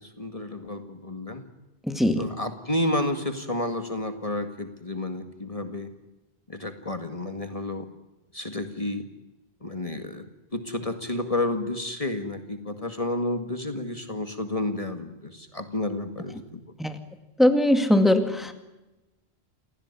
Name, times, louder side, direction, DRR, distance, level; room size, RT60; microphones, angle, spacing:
voice 1, 0.0-1.4 2.2-5.9 6.5-7.9 8.3-9.1 9.6-10.3 10.5-16.6, left 1 dB, 35° left, 8 dB, 2.0 m, -31 dB
voice 2, 1.9-2.3 16.8-16.9 17.4-18.5, left 1 dB, ahead, 8 dB, 2.0 m, -20 dB
28.5 x 17.0 x 9.7 m, 1.0 s
omnidirectional pair, 1.1 m